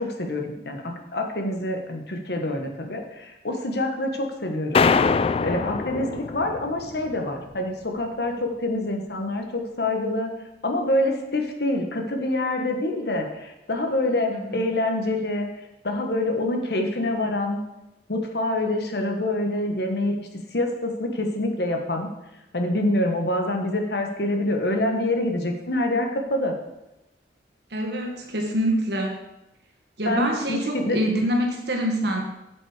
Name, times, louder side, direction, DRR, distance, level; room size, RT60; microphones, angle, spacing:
voice 1, 0.0-4.8 5.4-10.3 10.6-15.5 15.8-17.6 18.1-22.1 22.5-26.5 30.1-31.0, left 1 dB, 65° left, 3 dB, 1.3 m, -26 dB
sound 1, 4.7-7.2, left 5 dB, 35° left, 0.3 m, -23 dB
voice 2, 14.3-14.7 27.7-29.2 30.0-32.2, equal, 65° right, 2 dB, 1.7 m, -25 dB
7.9 x 7.8 x 5.0 m, 0.92 s
head